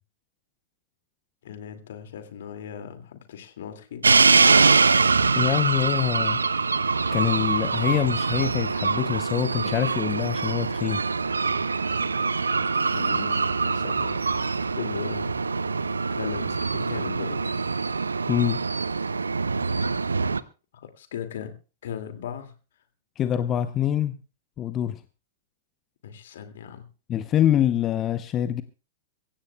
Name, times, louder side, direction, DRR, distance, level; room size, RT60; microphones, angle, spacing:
voice 1, 1.4-4.1 12.9-14.3 14.8-15.3 16.1-17.6 20.7-21.5 21.8-22.5 26.0-26.9, left 9 dB, 60° left, 7 dB, 2.3 m, -38 dB
sound 1, 4.0-20.4, right 4 dB, 75° right, 0.6 m, -24 dB
voice 2, 5.4-6.4 7.1-11.0 18.3-18.6 23.2-24.2 24.6-25.0 27.1-28.6, left 11 dB, 25° left, 12 dB, 0.7 m, -25 dB
24.0 x 16.0 x 2.3 m, 0.34 s
figure-of-eight pair, 100°, 0 cm